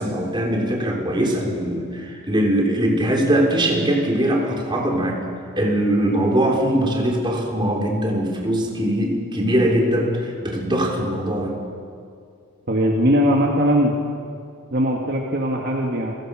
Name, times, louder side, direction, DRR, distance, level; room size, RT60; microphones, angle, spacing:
voice 1, 0.0-5.2 5.6-11.5, right 1 dB, 20° right, 0 dB, 3.6 m, -21 dB
voice 2, 12.7-13.9 14.7-16.1, equal, 50° right, 0 dB, 1.9 m, -20 dB
29.5 x 16.5 x 6.3 m, 2.3 s
head